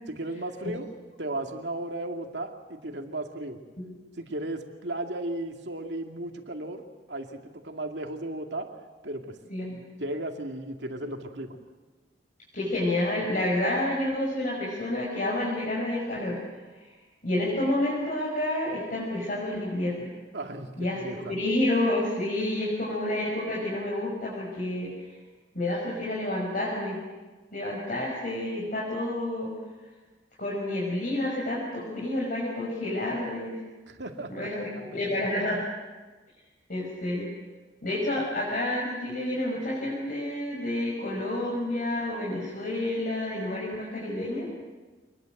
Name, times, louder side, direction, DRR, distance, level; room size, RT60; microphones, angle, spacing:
voice 1, 0.1-0.9 1.2-3.6 4.2-8.8 9.0-9.4 10.0-11.6 20.3-21.3 33.9-35.1, right 1 dB, 70° right, 3 dB, 2.5 m, -35 dB
voice 2, 9.5-9.8 12.5-16.4 17.2-20.1 20.8-21.0 21.3-24.9 25.5-27.0 27.5-29.5 30.4-33.6 34.3-35.6 36.7-37.3 37.8-44.4, left 1 dB, 50° left, -5 dB, 6.3 m, -29 dB
25.0 x 21.0 x 8.0 m, 1.3 s
head